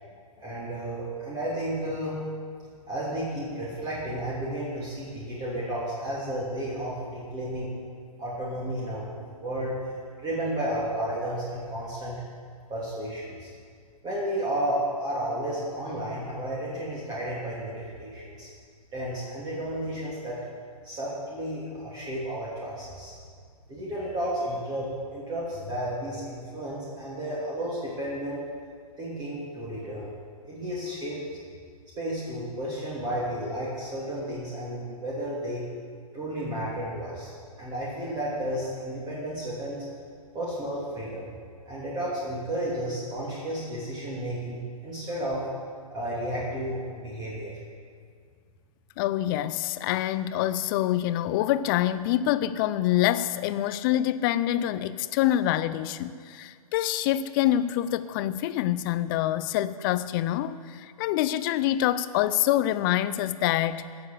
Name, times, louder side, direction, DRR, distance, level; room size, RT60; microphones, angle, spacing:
voice 1, 0.4-2.1 2.6-7.7 8.2-9.1 9.4-12.2 12.7-13.5 14.0-18.5 18.9-20.4 20.8-23.2 23.7-28.4 29.0-30.1 30.5-31.4 32.0-35.6 36.1-37.3 37.6-39.8 40.3-41.3 41.7-45.5 45.9-47.6, right 1 dB, 20° right, -6 dB, 2.8 m, -32 dB
voice 2, 49.0-63.9, left 13 dB, 35° left, 14 dB, 0.5 m, -26 dB
16.0 x 7.1 x 6.9 m, 2.1 s
hypercardioid pair, 130°, 20 cm